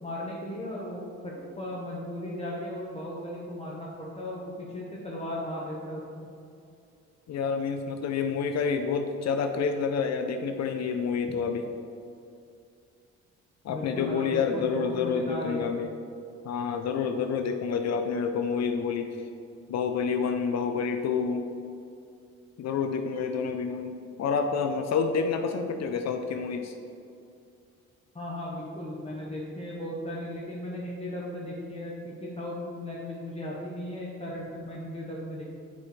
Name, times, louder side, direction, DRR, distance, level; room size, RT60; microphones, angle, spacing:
voice 1, 0.0-6.3 13.7-15.7 28.1-35.5, left 1 dB, 20° left, -5 dB, 1.1 m, -36 dB
voice 2, 7.3-11.7 13.6-15.9 16.4-19.2 19.7-21.5 22.6-26.7, left 5 dB, 60° left, 6 dB, 0.5 m, -28 dB
8.4 x 5.1 x 3.2 m, 2.5 s
cardioid pair, 90°, 30 cm